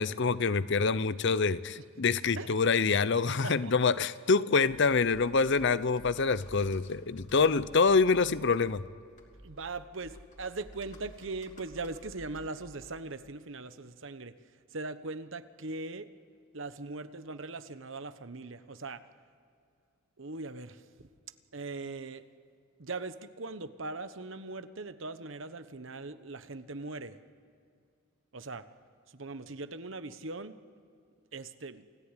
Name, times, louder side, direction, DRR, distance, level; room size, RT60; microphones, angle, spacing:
voice 1, 0.0-8.8, left 4 dB, 55° left, 16 dB, 0.7 m, -26 dB
voice 2, 3.2-3.7 9.4-14.3 14.7-16.1 16.5-19.0 20.2-21.1 21.5-22.2 22.8-27.2 28.3-28.6 29.1-30.5 31.3-31.8, right 3 dB, 60° right, 11 dB, 1.2 m, -40 dB
Computer keyboard, 4.7-13.3, equal, 35° left, 3.0 m, -53 dB
28.5 x 18.0 x 9.9 m, 2.4 s
head